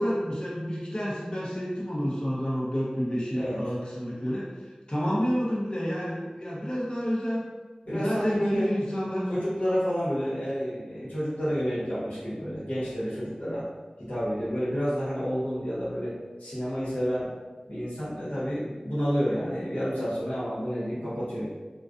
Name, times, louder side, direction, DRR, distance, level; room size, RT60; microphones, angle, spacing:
voice 1, 0.0-7.4 7.9-9.3, equal, 35° left, -7 dB, 0.6 m, -29 dB
voice 2, 7.8-8.7 9.3-13.6 14.1-16.1 16.4-17.3 17.7-21.5, equal, 85° left, -10 dB, 1.1 m, -29 dB
2.4 x 2.2 x 2.4 m, 1.3 s
wide cardioid pair, 50°, 3 cm